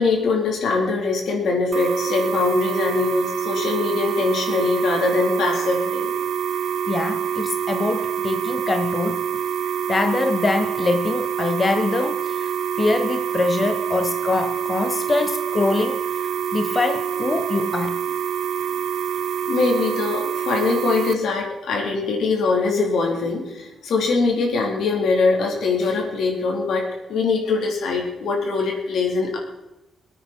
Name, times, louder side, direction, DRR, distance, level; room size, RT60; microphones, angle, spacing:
voice 1, 0.0-6.1 19.5-26.8 27.1-29.4, left 4 dB, 85° left, 0 dB, 3.5 m, -22 dB
sound 1, 1.7-21.1, right 8 dB, 75° right, 0.6 m, -26 dB
voice 2, 6.9-9.4 9.6-18.0, left 3 dB, 30° left, 7 dB, 0.9 m, -24 dB
22.0 x 9.3 x 4.4 m, 0.93 s
cardioid pair, 120°, 0 cm